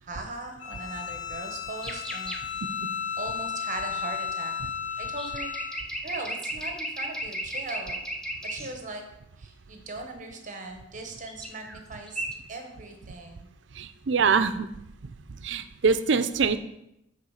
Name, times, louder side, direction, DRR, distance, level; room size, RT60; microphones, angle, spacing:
voice 1, 0.0-2.6 3.2-4.5 5.0-5.5 6.0-8.0 8.4-9.0 9.4-12.2 12.5-13.5, right 2 dB, 40° right, 4 dB, 1.1 m, -39 dB
Bowed string instrument, 0.6-5.8, left 7 dB, 75° left, 0.8 m, -34 dB
sound 1, 1.8-2.4 5.1-8.7 11.3-11.8 12.1-12.4, right 1 dB, 5° left, 0.7 m, -35 dB
voice 2, 13.8-14.7 15.4-16.6, right 5 dB, 70° right, 12 dB, 0.5 m, -24 dB
6.7 x 4.8 x 6.4 m, 0.83 s
head